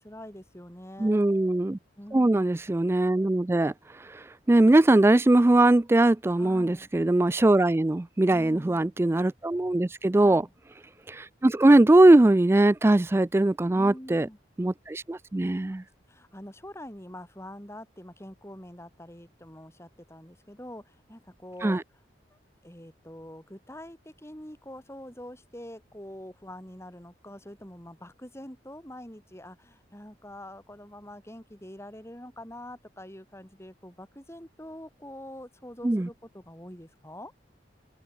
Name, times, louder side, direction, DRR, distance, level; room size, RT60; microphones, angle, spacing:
voice 1, 0.0-1.2 2.0-2.5 6.4-6.9 8.3-8.9 10.1-10.5 13.7-14.4 15.6-21.8 22.3-37.3, left 1 dB, 15° left, 6.5 m, -45 dB
voice 2, 1.0-1.8 2.1-3.7 4.0-10.5 11.1-14.3 14.6-15.8 21.6-21.8 35.8-36.1, right 2 dB, 15° right, 0.3 m, -21 dB
open air
head